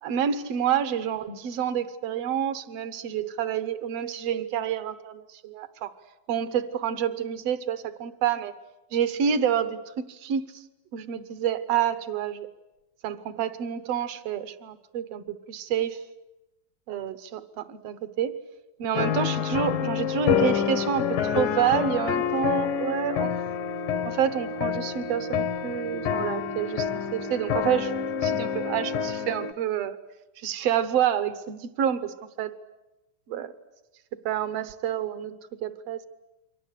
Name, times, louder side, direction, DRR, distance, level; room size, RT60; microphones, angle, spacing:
voice 1, 0.0-5.9 6.3-8.5 8.9-10.6 10.9-12.5 13.0-16.0 16.9-18.4 18.8-23.3 24.1-30.0 30.4-32.6 33.3-33.5 34.2-36.1, right 9 dB, 65° right, 13 dB, 1.7 m, -28 dB
sound 1, 18.9-29.5, left 7 dB, 75° left, 2.7 m, -27 dB
28.5 x 24.0 x 8.3 m, 0.98 s
omnidirectional pair, 4.0 m